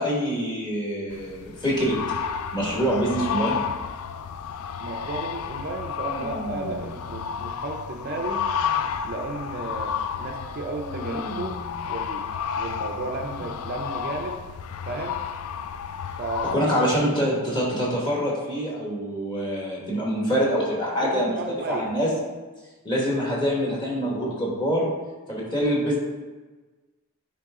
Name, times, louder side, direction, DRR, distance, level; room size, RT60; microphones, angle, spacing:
voice 1, 0.0-2.0 2.5-3.6 16.4-21.4 21.7-22.1 22.8-24.9 25.3-26.0, equal, 20° left, -4 dB, 1.6 m, -25 dB
sound 1, 1.1-16.6, left 7 dB, 75° left, 0.4 m, -31 dB
sound 2, 2.4-9.1 9.5-9.8 10.1-12.7 13.3-13.6, equal, 10° right, 0.9 m, -40 dB
voice 2, 4.8-8.4 9.0-11.6 11.9-12.2 12.6-14.4 14.9-15.2 16.2-16.6 21.0-21.9, right 2 dB, 45° right, 3 dB, 0.5 m, -33 dB
9.6 x 3.3 x 3.6 m, 1.3 s
head